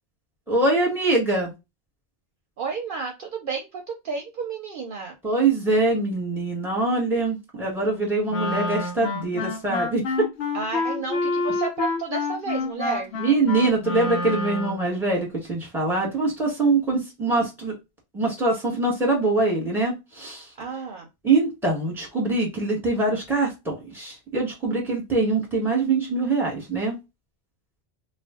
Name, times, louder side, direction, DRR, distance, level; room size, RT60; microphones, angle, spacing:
voice 1, 0.5-1.5 5.2-10.3 13.2-17.7 18.1-20.4 21.2-26.9, right 3 dB, ahead, -2 dB, 1.2 m, -23 dB
voice 2, 2.6-5.1 10.5-13.1 20.6-21.1, right 5 dB, 60° right, 3 dB, 0.7 m, -31 dB
Wind instrument woodwind instrument, 8.3-14.9, left 3 dB, 80° left, 0.9 m, -28 dB
2.5 x 2.2 x 3.5 m, 0.23 s
omnidirectional pair, 1.1 m